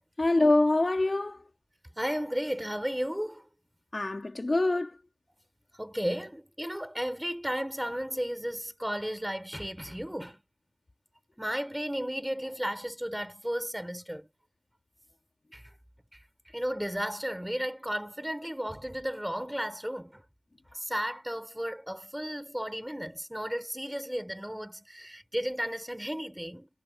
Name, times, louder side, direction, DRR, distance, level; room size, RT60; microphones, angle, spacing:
voice 1, 0.2-1.4 3.9-4.9, left 2 dB, 15° left, 3.3 m, -25 dB
voice 2, 2.0-3.4 5.8-10.4 11.4-14.3 15.5-15.6 16.5-20.2 20.7-26.7, equal, 5° right, 3.8 m, -34 dB
cardioid pair, 90°, 0 cm